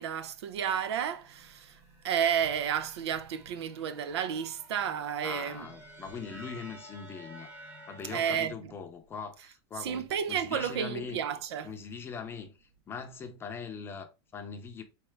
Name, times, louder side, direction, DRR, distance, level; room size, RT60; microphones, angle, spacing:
voice 1, 0.0-5.6 8.1-8.5 9.8-11.7, right 8 dB, 90° right, 0.6 m, -31 dB
sound 1, 0.6-8.4, right 1 dB, 15° right, 0.9 m, -52 dB
voice 2, 5.2-7.5 7.9-11.2 11.6-14.8, left 5 dB, 15° left, 0.6 m, -41 dB
4.0 x 3.4 x 3.3 m
supercardioid pair, 155°, 14 cm